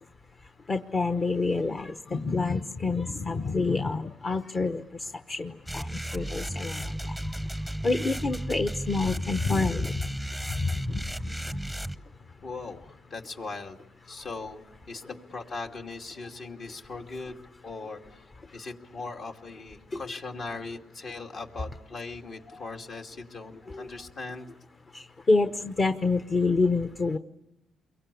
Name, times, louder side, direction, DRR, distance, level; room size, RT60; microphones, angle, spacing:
voice 1, 0.7-4.8 5.3-5.9 6.1-6.8 7.8-9.9 10.9-11.0 23.7-23.9 25.3-27.2, left 3 dB, 35° left, 9 dB, 1.1 m, -27 dB
sound 1, 5.7-12.0, right 1 dB, 5° left, 0.9 m, -34 dB
voice 2, 12.4-13.8 14.1-18.2 18.5-24.5, left 3 dB, 55° left, 3 dB, 2.6 m, -39 dB
29.0 x 23.0 x 8.5 m, 0.97 s
cardioid pair, 90°, 0 cm